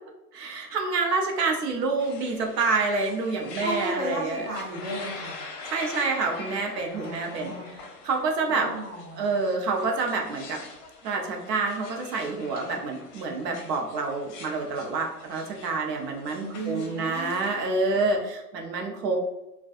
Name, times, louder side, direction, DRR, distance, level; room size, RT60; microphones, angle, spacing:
voice 1, 0.3-4.5 5.7-7.5 8.0-8.7 9.2-10.6 11.0-19.2, right 3 dB, 85° right, 2 dB, 0.7 m, -27 dB
sound 1, 2.0-17.7, left 4 dB, 50° left, 0.7 m, -44 dB
voice 2, 3.6-5.3 6.9-7.7 8.6-9.3 16.4-17.4 17.9-18.0, right 1 dB, 25° right, -7 dB, 0.8 m, -34 dB
2.5 x 2.3 x 2.3 m, 0.94 s
hypercardioid pair, 130°, 47 cm